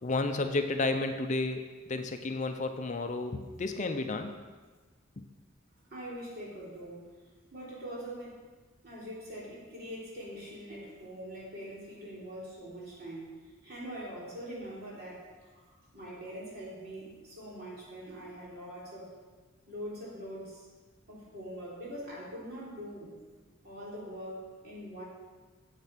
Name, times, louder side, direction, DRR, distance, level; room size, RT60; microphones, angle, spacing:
voice 1, 0.0-4.3, left 2 dB, 35° left, 7 dB, 0.5 m, -32 dB
voice 2, 5.8-7.1 7.5-8.4 8.8-13.3 13.6-19.1 19.7-20.7 21.1-23.2 23.6-25.0, equal, 50° right, -6 dB, 3.4 m, -43 dB
9.0 x 7.4 x 5.8 m, 1.4 s
head